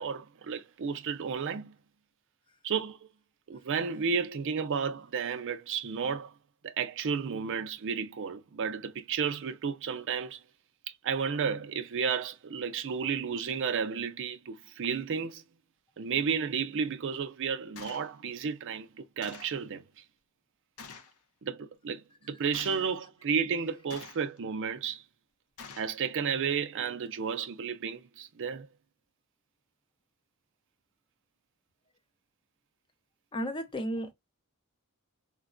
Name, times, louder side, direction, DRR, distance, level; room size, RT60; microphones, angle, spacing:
voice 1, 0.0-1.7 2.6-3.0 3.5-6.3 6.6-10.4 11.0-15.4 16.0-19.8 21.4-25.0 25.8-28.7, right 6 dB, 60° right, 0.5 m, -32 dB
Gunshot gunfire, 17.8-18.1 19.2-19.6 20.8-21.2 22.5-22.9 23.9-24.4 25.6-26.0, left 5 dB, 75° left, 0.6 m, -47 dB
voice 2, 33.3-34.1, equal, 25° left, 0.5 m, -33 dB
3.8 x 2.2 x 2.4 m
head